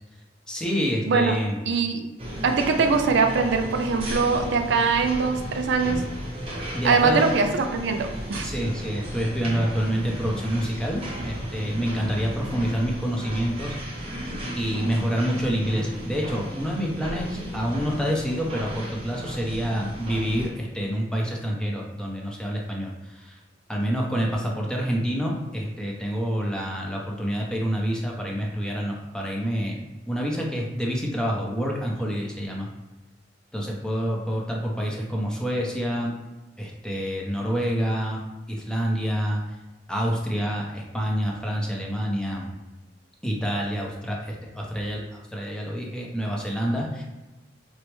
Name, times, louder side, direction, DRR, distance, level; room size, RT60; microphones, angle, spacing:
voice 1, 0.5-1.6 6.7-7.3 8.4-14.2 14.6-23.4 23.7-29.8 30.1-32.7 33.5-36.1 36.6-38.2 38.5-39.6 39.9-42.5 43.2-47.0, equal, 5° left, -2 dB, 0.5 m, -27 dB
voice 2, 1.7-2.1 2.4-6.0 6.8-8.5, right 4 dB, 65° right, 5 dB, 0.4 m, -22 dB
sound 1, 2.2-20.5, equal, 30° right, 0.8 m, -34 dB
4.3 x 2.0 x 3.0 m, 1.1 s
head